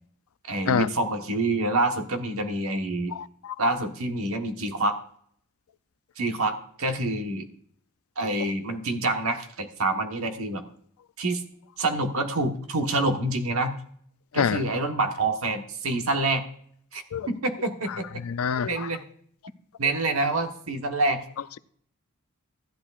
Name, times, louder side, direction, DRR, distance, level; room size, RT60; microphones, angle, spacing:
voice 1, 0.5-3.1 3.6-5.0 6.2-7.5 8.2-10.6 11.2-11.4 11.8-13.7 14.3-16.4 16.9-18.1 18.6-19.0 19.8-21.2, right 2 dB, 80° right, 1.3 m, -27 dB
voice 2, 3.1-3.5 14.3-14.7 17.1-17.3 18.2-18.9, left 7 dB, 75° left, 0.4 m, -26 dB
14.5 x 10.5 x 2.4 m
head